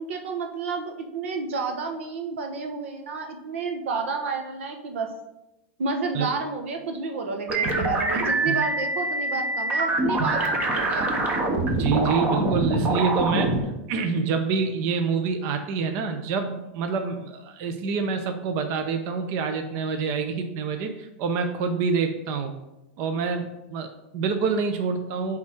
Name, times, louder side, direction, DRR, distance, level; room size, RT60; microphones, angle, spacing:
voice 1, 0.0-5.1 5.8-11.1, right 4 dB, 90° right, 4 dB, 1.2 m, -30 dB
sound 1, 7.5-13.6, right 2 dB, 20° right, 0.9 m, -24 dB
voice 2, 11.7-22.5 23.0-25.4, right 5 dB, 40° right, 6 dB, 0.6 m, -27 dB
8.8 x 3.6 x 4.4 m, 0.94 s
supercardioid pair, 155°, 7 cm